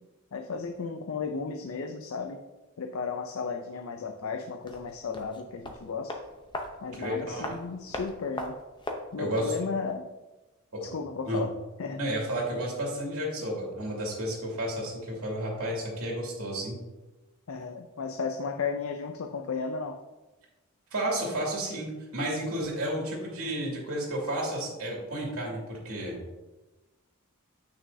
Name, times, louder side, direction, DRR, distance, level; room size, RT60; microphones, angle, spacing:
voice 1, 0.3-2.4 2.8-6.1 6.8-8.6 9.1-10.1 10.8-11.5 11.8-12.0 17.5-20.0, left 5 dB, 70° left, 6 dB, 0.5 m, -34 dB
sound 1, 4.6-9.6 9.9-10.0, left 1 dB, 20° left, 0.7 m, -40 dB
voice 2, 6.9-7.5 9.2-9.5 10.7-10.9 11.3-11.4 12.0-16.7 20.9-26.2, right 1 dB, 75° right, -3 dB, 2.5 m, -32 dB
8.5 x 6.2 x 2.7 m, 1.1 s
head